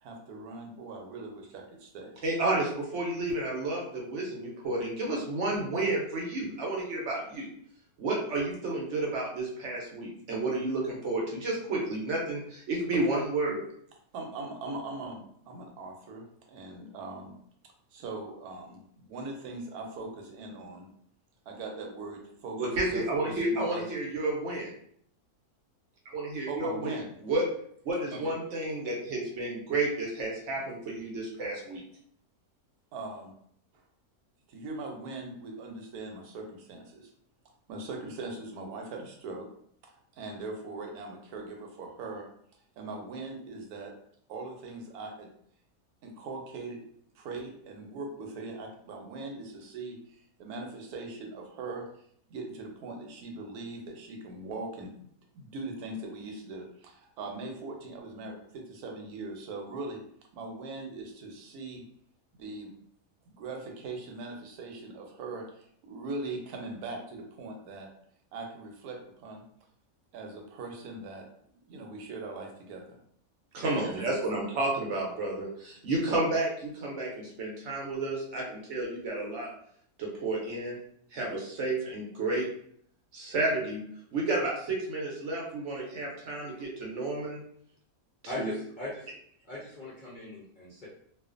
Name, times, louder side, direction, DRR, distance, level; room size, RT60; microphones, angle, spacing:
voice 1, 0.0-2.2 12.9-13.1 14.1-17.3 17.9-20.9 21.5-23.9 26.5-27.1 28.1-28.3 32.9-33.3 34.5-37.1 37.7-39.5 40.1-42.3 42.8-43.9 44.3-45.3 46.0-46.8 47.1-50.0 50.4-51.9 52.3-55.1 55.3-60.0 60.3-61.8 62.3-62.7 63.3-67.9 68.3-69.4 70.1-73.0 73.6-74.0, right 3 dB, 90° right, 2 dB, 1.1 m, -40 dB
voice 2, 2.2-7.5 8.0-13.6 22.6-24.7 26.1-26.9 27.2-27.4 27.8-31.8 73.5-79.5 80.0-80.8 81.1-82.5 83.1-83.8 84.1-87.4 88.4-88.5, right 2 dB, 60° right, -2 dB, 0.9 m, -31 dB
voice 3, 88.3-89.1 89.4-90.9, left 2 dB, 50° left, -8 dB, 0.6 m, -39 dB
2.4 x 2.4 x 2.4 m, 0.65 s
omnidirectional pair, 1.6 m